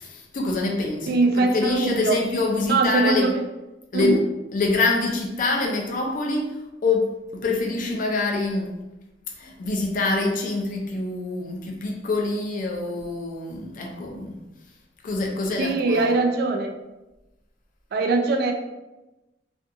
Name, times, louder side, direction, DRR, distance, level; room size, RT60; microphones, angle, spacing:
voice 1, 0.0-3.3 3.9-4.2 4.5-8.8 9.4-14.4 15.0-16.1, left 3 dB, 45° left, 1 dB, 0.4 m, -25 dB
voice 2, 1.1-2.2 2.7-3.5 3.9-4.2 15.6-16.7 17.9-18.5, right 3 dB, 55° right, 4 dB, 0.4 m, -22 dB
2.5 x 2.3 x 2.6 m, 1.0 s
head